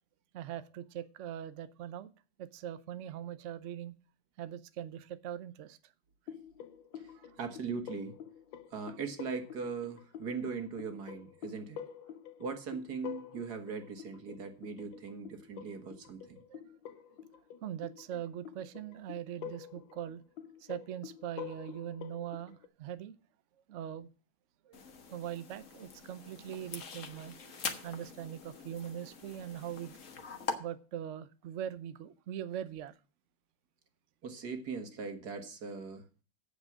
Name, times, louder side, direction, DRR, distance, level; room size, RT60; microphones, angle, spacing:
voice 1, 0.3-2.1 2.4-3.9 4.4-5.9 7.1-7.3 16.5-16.6 17.6-20.2 20.6-23.2 23.7-24.1 24.6-24.8 25.1-27.5 27.8-30.0 30.6-32.9, right 10 dB, 80° right, 13 dB, 0.6 m, -41 dB
sound 1, 6.3-22.7, left 9 dB, 75° left, 1.5 m, -48 dB
voice 2, 7.0-8.2 8.7-11.8 12.4-16.4 34.2-36.0, right 5 dB, 55° right, 6 dB, 2.1 m, -40 dB
sound 2, 24.7-30.5, left 5 dB, 45° left, 1.4 m, -43 dB
8.5 x 7.3 x 7.3 m, 0.37 s
omnidirectional pair, 2.1 m